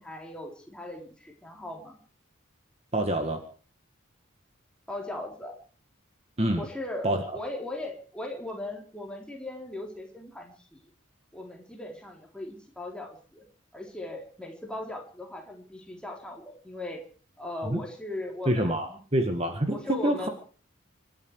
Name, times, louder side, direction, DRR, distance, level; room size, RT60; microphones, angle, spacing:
voice 1, 0.0-2.0 4.9-5.6 6.6-7.1 7.3-10.8 11.3-13.4 13.7-17.0 17.4-19.0 19.7-20.3, left 1 dB, 5° left, 1 dB, 3.9 m, -38 dB
voice 2, 2.9-3.4 6.4-6.6 7.0-7.4 17.6-17.8 18.5-20.3, right 1 dB, 30° right, 6 dB, 1.9 m, -27 dB
26.5 x 11.5 x 4.8 m, 0.41 s
head